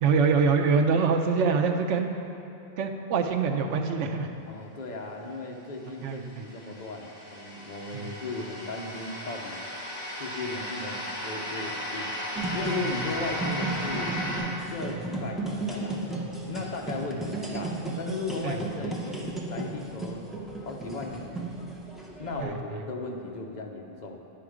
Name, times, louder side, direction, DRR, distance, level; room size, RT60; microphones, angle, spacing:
voice 1, 0.0-2.1 2.8-4.3 6.0-6.5 7.9-8.1 12.8-13.0 14.9-15.0 18.4-18.6 22.4-22.5, right 5 dB, 80° right, 4 dB, 1.0 m, -25 dB
voice 2, 4.5-9.7 10.2-12.2 12.5-14.1 14.7-20.3 20.7-21.5 22.2-24.3, left 3 dB, 45° left, 1 dB, 0.8 m, -36 dB
sound 1, 6.0-14.4, equal, 25° right, 2.2 m, -36 dB
sound 2, 12.4-22.4, right 2 dB, ahead, 0.6 m, -34 dB
9.0 x 5.8 x 4.9 m, 2.8 s
omnidirectional pair, 1.2 m